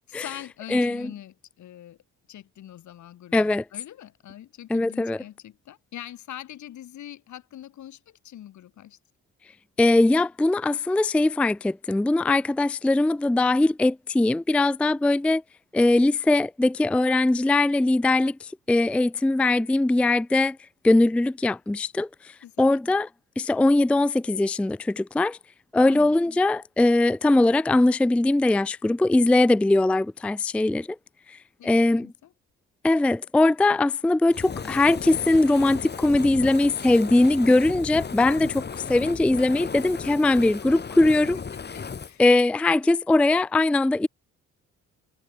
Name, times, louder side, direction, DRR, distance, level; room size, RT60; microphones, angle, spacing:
voice 1, 0.1-2.0 2.3-9.0 22.4-22.8 25.8-26.2 31.6-32.3 38.4-38.7 41.5-42.2, left 12 dB, 70° left, 2.8 m, -43 dB
voice 2, 0.7-1.1 3.3-3.6 4.7-5.2 9.8-15.4 15.7-20.6 20.8-22.1 22.6-23.1 23.4-25.4 25.7-30.9 31.3-31.4 31.6-32.1 32.8-38.6 38.9-41.4 42.2-44.1, left 2 dB, 5° left, 0.3 m, -21 dB
Fire, 34.3-42.1, left 5 dB, 35° left, 2.0 m, -35 dB
cardioid pair, 90°, 30 cm